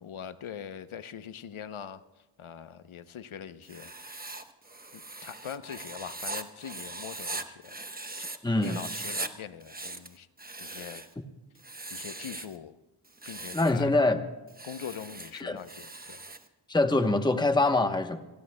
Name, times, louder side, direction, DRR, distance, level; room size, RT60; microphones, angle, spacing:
voice 1, 0.0-2.0 2.4-3.9 4.9-7.8 8.2-8.3 8.6-10.3 10.6-11.0 11.9-12.8 13.2-13.9 14.6-16.2, left 8 dB, 75° left, 12 dB, 0.8 m, -42 dB
Writing, 3.6-8.4 8.6-9.3 9.6-11.1 11.6-12.6 13.1-13.8 14.5-16.5, right 2 dB, 20° right, 1.0 m, -40 dB
voice 2, 8.4-8.8 13.5-14.2 15.4-15.6 16.7-18.2, left 2 dB, 10° left, 7 dB, 0.9 m, -24 dB
26.5 x 19.0 x 2.2 m, 1.1 s
wide cardioid pair, 75°, 50 cm